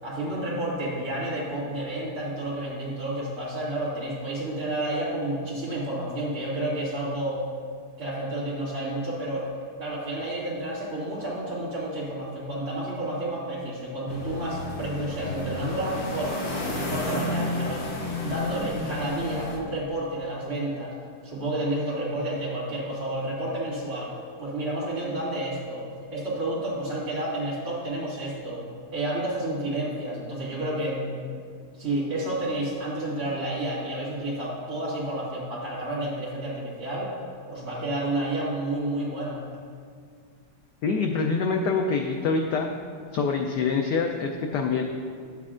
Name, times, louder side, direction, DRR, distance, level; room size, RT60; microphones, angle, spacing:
voice 1, 0.0-7.4 8.0-9.5 9.8-16.4 16.7-17.9 18.2-21.0 21.2-24.1 24.4-28.6 28.9-31.1 31.8-37.1 37.5-39.4, right 1 dB, 45° right, -7 dB, 2.7 m, -30 dB
sound 1, 14.1-19.6, left 2 dB, 65° left, 1.7 m, -32 dB
voice 2, 40.8-42.7 43.1-44.8, left 4 dB, 80° left, 3 dB, 0.9 m, -25 dB
11.5 x 7.5 x 2.5 m, 2.1 s
omnidirectional pair, 2.3 m